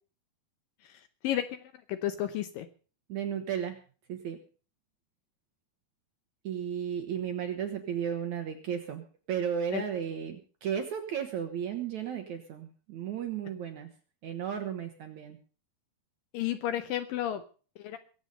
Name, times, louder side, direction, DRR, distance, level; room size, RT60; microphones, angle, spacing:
voice 1, 1.9-2.7 9.7-9.8 16.3-17.4 17.8-18.0, left 12 dB, 75° left, 10 dB, 2.2 m, -31 dB
voice 2, 3.1-3.8 4.1-4.4 6.4-13.9 14.2-15.4, right 8 dB, 65° right, 6 dB, 2.0 m, -34 dB
22.5 x 8.1 x 5.4 m, 0.39 s
omnidirectional pair, 4.6 m